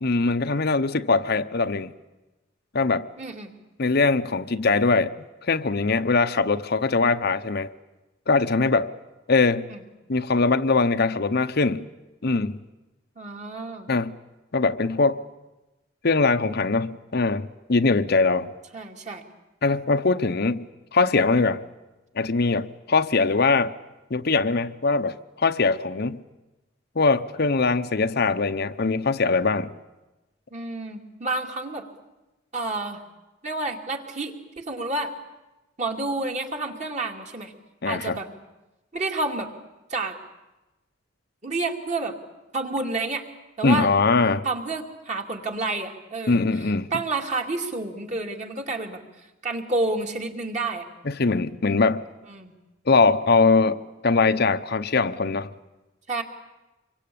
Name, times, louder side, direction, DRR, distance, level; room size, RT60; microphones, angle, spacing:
voice 1, 0.0-1.9 2.7-3.1 3.8-5.1 5.4-7.7 8.3-8.9 9.3-9.7 10.1-11.9 12.2-12.6 13.9-14.1 14.5-15.2 16.0-18.5 19.6-20.6 20.9-21.6 22.2-23.7 24.1-26.2 27.0-29.7 37.8-38.2 43.6-44.5 46.3-46.9 51.0-52.0 52.9-55.5, left 3 dB, 55° left, 9 dB, 0.8 m, -22 dB
voice 2, 3.2-3.5 9.7-9.8 13.2-13.9 18.7-19.2 20.1-20.2 30.5-31.9 32.5-33.0 33.4-35.1 35.8-37.5 37.9-38.3 38.9-39.5 39.9-40.1 41.4-42.1 42.5-43.2 43.6-43.9 44.4-50.8 52.3-52.5 56.1-56.2, right 2 dB, 35° right, 3 dB, 2.6 m, -29 dB
26.0 x 23.5 x 8.6 m, 1.0 s
head